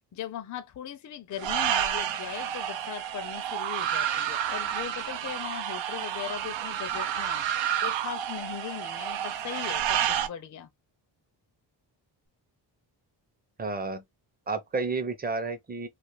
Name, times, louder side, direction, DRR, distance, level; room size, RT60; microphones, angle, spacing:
voice 1, 0.0-10.7, left 10 dB, 40° left, 0.5 m, -39 dB
sound 1, 1.4-10.3, right 10 dB, 80° right, 0.7 m, -30 dB
voice 2, 13.6-14.0 14.5-15.9, right 3 dB, 20° right, 0.7 m, -31 dB
2.5 x 2.5 x 3.1 m
wide cardioid pair, 130°, 44 cm